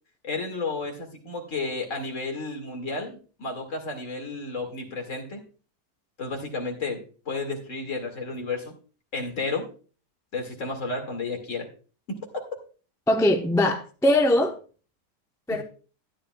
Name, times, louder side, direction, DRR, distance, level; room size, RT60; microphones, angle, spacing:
voice 1, 0.2-5.4 6.2-8.7 9.1-9.7 10.3-11.7 12.1-12.2 15.5-15.6, left 3 dB, 50° left, 2.4 m, -32 dB
voice 2, 13.1-14.5 15.5-15.6, left 1 dB, 5° left, 0.5 m, -21 dB
13.0 x 10.0 x 2.3 m
omnidirectional pair, 1.8 m